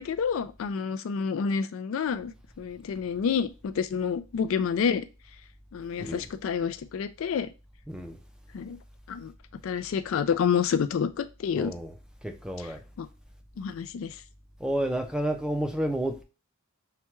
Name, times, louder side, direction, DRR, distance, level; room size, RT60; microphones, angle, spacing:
voice 1, 0.0-2.3 2.6-5.0 5.7-7.5 8.5-8.8 9.1-9.3 9.6-11.7 13.0-13.1 13.6-14.1, left 6 dB, 65° left, 0.3 m, -28 dB
voice 2, 7.9-8.2 11.5-12.0 12.2-12.8 14.6-16.2, right 1 dB, 5° right, 0.4 m, -30 dB
5.7 x 2.2 x 3.0 m
head